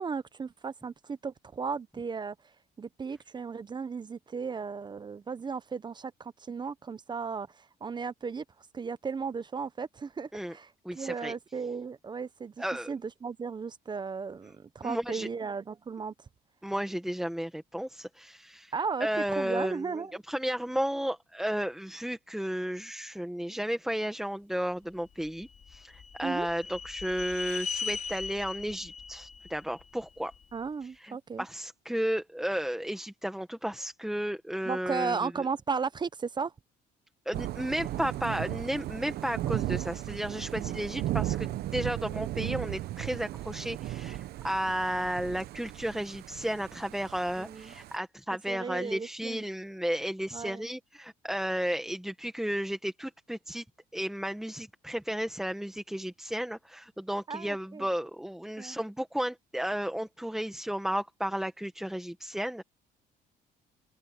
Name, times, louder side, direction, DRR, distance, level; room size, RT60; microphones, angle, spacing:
voice 1, 0.0-12.5 12.9-16.3 18.7-20.2 26.2-26.5 30.5-31.4 34.6-36.5 47.4-47.7 48.5-49.4 50.3-50.7 57.3-57.9 58.6-58.8, right 5 dB, 25° right, 0.8 m, -35 dB
voice 2, 10.8-11.3 12.6-12.9 14.8-15.3 16.6-18.7 19.0-30.3 30.8-35.3 37.2-53.6 53.9-62.6, equal, ahead, 1.7 m, -33 dB
sound 1, 25.2-30.4, left 5 dB, 45° left, 4.1 m, -39 dB
Thunder / Rain, 37.3-48.0, right 14 dB, 70° right, 0.9 m, -36 dB
open air
cardioid pair, 110°, 17 cm